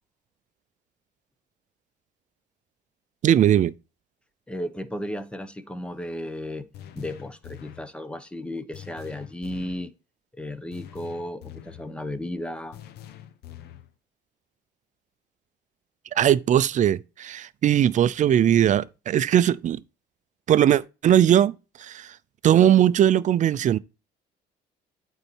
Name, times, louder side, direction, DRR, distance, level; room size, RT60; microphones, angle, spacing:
voice 1, 3.2-3.7 16.2-19.8 20.5-21.5 21.8-22.1 22.4-23.8, right 10 dB, 45° right, 0.5 m, -19 dB
voice 2, 4.5-6.7 6.9-9.9 10.4-12.8, left 1 dB, 5° left, 1.0 m, -34 dB
sound 1, 6.7-7.9 8.7-9.9 10.7-11.9 12.7-13.9, left 10 dB, 75° left, 0.8 m, -44 dB
8.7 x 4.1 x 4.5 m
cardioid pair, 110°, 17 cm